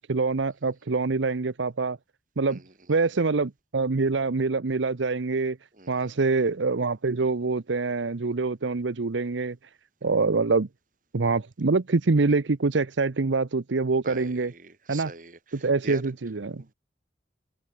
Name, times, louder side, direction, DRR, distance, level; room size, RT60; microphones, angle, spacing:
voice 1, 0.1-2.0 2.4-2.6 2.9-5.6 5.9-9.6 10.0-10.7 11.1-14.5 14.9-15.1 15.5-16.6, right 3 dB, 85° right, 0.8 m, -25 dB
voice 2, 5.8-6.1 14.0-16.0 16.6-16.7, right 3 dB, 45° right, 3.9 m, -42 dB
head